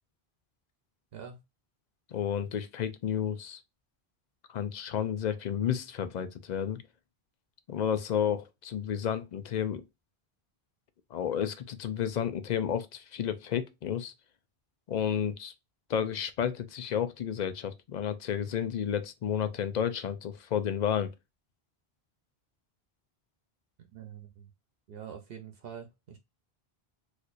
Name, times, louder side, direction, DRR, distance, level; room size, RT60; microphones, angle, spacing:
voice 1, 2.1-3.6 4.5-6.8 7.7-9.8 11.1-14.1 14.9-15.5 15.9-21.1, left 8 dB, 55° left, 0.5 m, -31 dB
voice 2, 23.9-24.5 24.9-26.2, right 8 dB, 70° right, 0.9 m, -45 dB
4.3 x 2.5 x 2.4 m
omnidirectional pair, 1.1 m